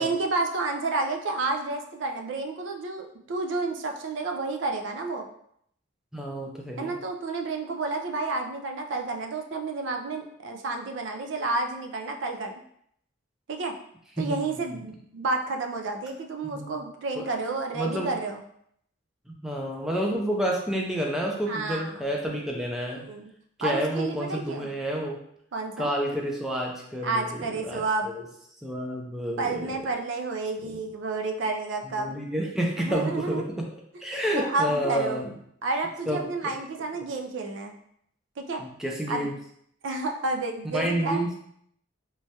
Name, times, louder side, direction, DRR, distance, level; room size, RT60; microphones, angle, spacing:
voice 1, 0.0-5.3 6.8-12.6 13.5-13.7 14.2-18.4 21.5-22.0 23.0-23.3 23.6-24.7 25.5-25.9 27.0-28.1 29.4-32.1 32.8-33.4 34.3-35.2 35.6-37.8 38.4-38.6 39.1-39.3 39.8-41.3, right 3 dB, 65° right, 3 dB, 0.4 m, -30 dB
voice 2, 6.1-6.9 14.2-14.4 14.7-14.8 16.5-16.8 17.2-17.3 17.7-18.1 19.3-23.0 23.6-25.2 25.8-28.2 28.6-29.7 30.6-30.8 31.8-33.7 34.0-35.3 36.1-36.5 38.6-39.3 40.6-41.4, equal, ahead, -1 dB, 0.4 m, -29 dB
3.1 x 2.2 x 2.7 m, 0.69 s
head